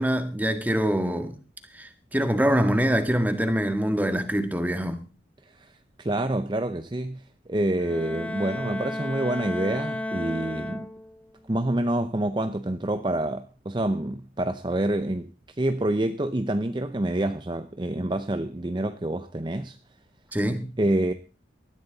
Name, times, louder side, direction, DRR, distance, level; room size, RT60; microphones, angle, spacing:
voice 1, 0.0-1.4 1.7-5.0 20.3-20.7, equal, 10° right, 1.7 m, -24 dB
voice 2, 5.4-10.9 11.5-19.8 20.8-21.1, right 1 dB, 25° right, 0.7 m, -27 dB
Bowed string instrument, 7.8-11.3, left 1 dB, 10° left, 0.8 m, -33 dB
20.0 x 14.0 x 4.0 m
head